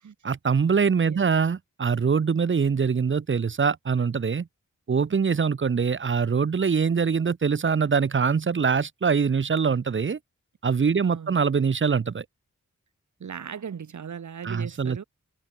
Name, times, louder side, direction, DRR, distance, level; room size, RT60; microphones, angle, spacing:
voice 1, 0.2-4.5 4.9-10.2 10.6-12.2 14.4-15.0, right 6 dB, 40° right, 0.5 m, -23 dB
voice 2, 11.0-11.4 13.2-15.0, right 7 dB, 65° right, 0.8 m, -37 dB
wide cardioid pair, 50°, 31 cm